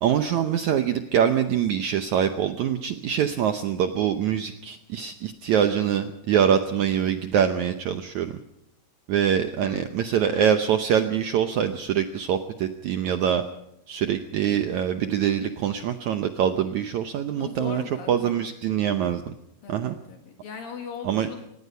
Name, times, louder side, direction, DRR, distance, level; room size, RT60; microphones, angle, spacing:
voice 1, 0.0-8.3 9.1-13.4 13.9-17.8 18.1-19.3 19.7-20.0 21.0-21.3, right 9 dB, 75° right, 8 dB, 1.8 m, -24 dB
voice 2, 9.6-10.6 17.3-18.4 19.6-21.4, left 6 dB, 70° left, 3 dB, 3.4 m, -39 dB
25.0 x 19.5 x 5.6 m, 0.80 s
omnidirectional pair, 4.4 m